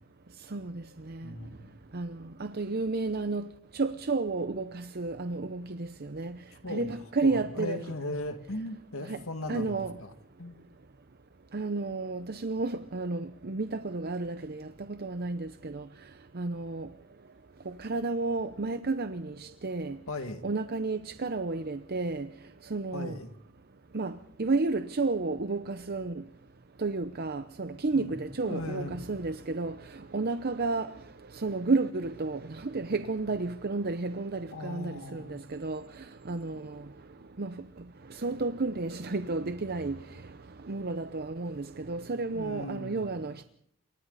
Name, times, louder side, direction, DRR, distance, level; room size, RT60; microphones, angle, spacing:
voice 1, 0.5-1.2 1.9-3.5 3.7-6.4 6.7-7.8 9.1-9.2 9.5-9.9 11.5-15.8 16.3-16.9 17.7-20.0 20.4-22.3 22.7-23.1 23.9-26.2 26.8-29.7 30.1-30.9 31.4-35.8 36.3-36.7 37.4-37.5 38.2-40.0 40.7-43.4, right 3 dB, 45° right, 0.8 m, -32 dB
voice 2, 1.2-1.8 6.6-6.9 7.2-10.1 10.4-10.6 20.1-20.4 22.9-23.3 27.9-28.1 28.4-29.0 34.5-35.4 42.3-43.0, left 2 dB, 65° left, 2.2 m, -38 dB
28.5 x 24.0 x 4.1 m
head